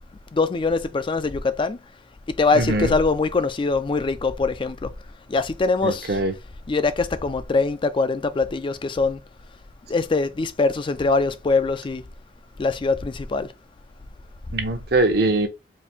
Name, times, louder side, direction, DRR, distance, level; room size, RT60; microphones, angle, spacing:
voice 1, 0.3-1.8 2.4-4.9 5.3-6.1 6.7-9.2 9.9-12.0 12.6-13.5, left 3 dB, 30° left, 0.4 m, -23 dB
voice 2, 2.5-2.9 5.8-6.3 14.5-15.5, right 2 dB, 60° right, 0.9 m, -22 dB
4.3 x 2.6 x 3.4 m
head